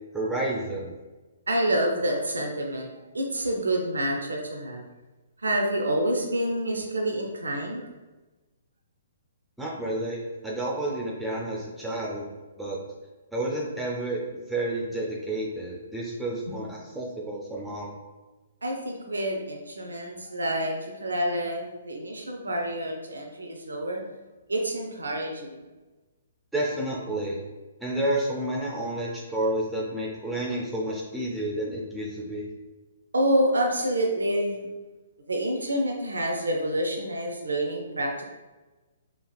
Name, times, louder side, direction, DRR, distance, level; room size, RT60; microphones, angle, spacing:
voice 1, 0.1-0.9 9.6-12.3 12.6-12.8 13.3-17.9 26.5-27.4 27.8-32.5, right 1 dB, 5° right, -5 dB, 0.5 m, -30 dB
voice 2, 1.5-2.9 3.1-4.8 5.4-7.9 16.5-16.6 18.6-24.0 24.5-25.6 33.1-34.7 35.3-38.2, right 1 dB, 80° right, 1 dB, 0.4 m, -28 dB
3.3 x 2.4 x 2.3 m, 1.2 s
figure-of-eight pair, 125°, 0 cm